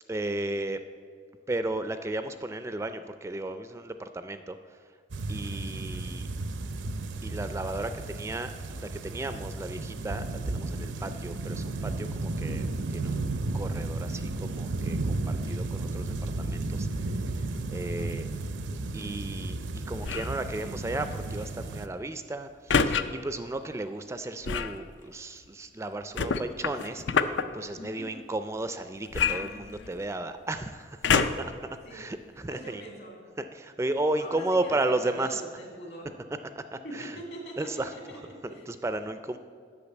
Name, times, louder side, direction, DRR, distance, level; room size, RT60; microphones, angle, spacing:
voice 1, 0.1-0.8 1.5-4.8 5.3-6.3 7.2-12.6 12.9-13.2 13.5-16.9 17.2-17.3 17.7-18.3 18.9-32.8 33.4-35.4 36.6-37.2 37.6-37.9 38.7-39.4, right 2 dB, 15° right, 10 dB, 0.3 m, -34 dB
sound 1, 5.1-21.9, right 2 dB, 85° right, 0.6 m, -33 dB
voice 2, 17.9-18.4 27.7-28.2 31.8-32.0 32.5-33.2 34.0-36.1 36.8-38.6, equal, 60° left, -1 dB, 2.7 m, -43 dB
sound 2, 20.0-20.4 22.7-23.0 24.4-24.8 26.2-27.4 29.1-30.1 31.0-31.6 32.2-32.3, left 6 dB, 80° left, 0.5 m, -26 dB
8.5 x 6.3 x 8.2 m, 2.1 s
head